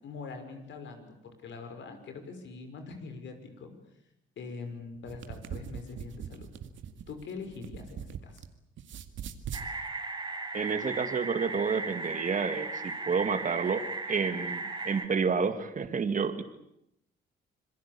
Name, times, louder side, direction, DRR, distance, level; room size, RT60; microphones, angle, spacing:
voice 1, 0.0-3.7 4.4-6.5 7.1-8.4, left 4 dB, 70° left, 7 dB, 6.0 m, -43 dB
sound 1, 4.9-8.5 8.8-9.7, right 8 dB, 75° right, 2.1 m, -41 dB
sound 2, 9.5-15.1, right 3 dB, 20° right, 4.3 m, -36 dB
voice 2, 10.5-16.4, right 5 dB, 40° right, 9 dB, 2.3 m, -30 dB
27.0 x 21.5 x 8.7 m, 0.81 s
cardioid pair, 90°, 20 cm